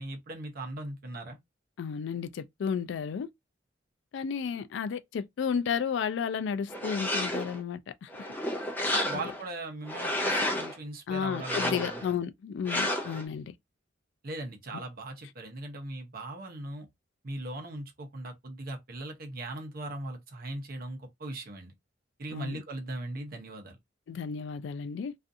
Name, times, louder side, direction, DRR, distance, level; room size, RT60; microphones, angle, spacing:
voice 1, 0.0-1.4 8.9-12.2 14.2-16.9 17.2-21.7 22.2-23.8, right 2 dB, 50° right, 0.7 m, -39 dB
voice 2, 1.8-3.3 4.1-8.1 9.1-9.2 11.1-13.5 14.7-14.8 22.3-22.6 24.1-25.1, left 7 dB, 65° left, 0.3 m, -33 dB
sound 1, 6.7-7.6 8.1-9.4 9.9-10.8 11.3-12.1 12.7-13.2, left 1 dB, 10° left, 0.5 m, -31 dB
2.4 x 2.4 x 2.5 m
head